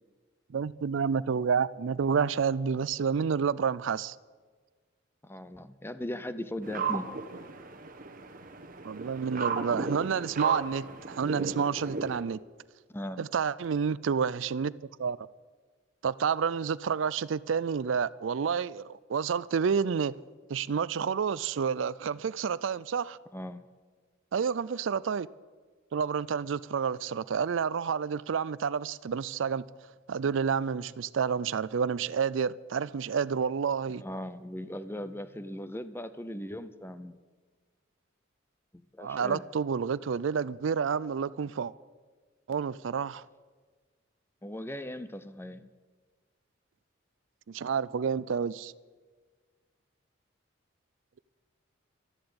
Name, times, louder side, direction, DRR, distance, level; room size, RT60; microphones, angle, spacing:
voice 1, 0.5-4.2 8.8-12.4 13.2-14.7 15.0-15.2 16.0-20.1 20.5-23.2 24.3-25.3 25.9-29.6 30.1-34.0 39.0-41.7 42.5-43.2 47.5-48.7, right 6 dB, 75° right, 0.4 m, -29 dB
voice 2, 5.2-7.1 12.9-13.2 23.3-23.7 34.0-37.2 38.7-39.4 44.4-45.7, left 1 dB, 10° left, 0.7 m, -38 dB
sound 1, 6.6-12.2, right 5 dB, 45° right, 1.3 m, -35 dB
13.0 x 11.5 x 8.8 m
head